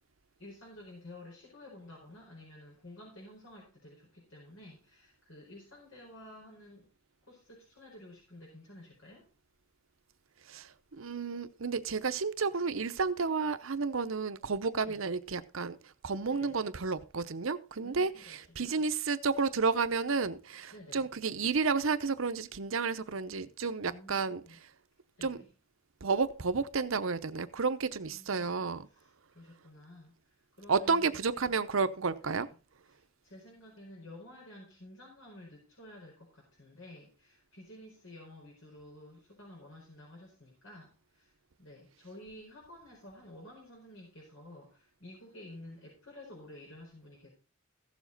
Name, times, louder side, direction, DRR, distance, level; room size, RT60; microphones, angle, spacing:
voice 1, 0.4-6.9 7.2-9.3 14.8-15.0 16.2-16.6 17.8-18.8 20.7-21.1 23.9-24.6 25.2-25.5 28.1-31.6 32.3-32.5 32.9-41.3 41.6-47.3, left 1 dB, 75° left, 4.8 m, -52 dB
voice 2, 10.5-15.8 16.0-24.4 25.2-25.4 26.0-28.9 30.7-32.5, right 4 dB, 70° right, 0.8 m, -31 dB
15.5 x 7.3 x 4.0 m
head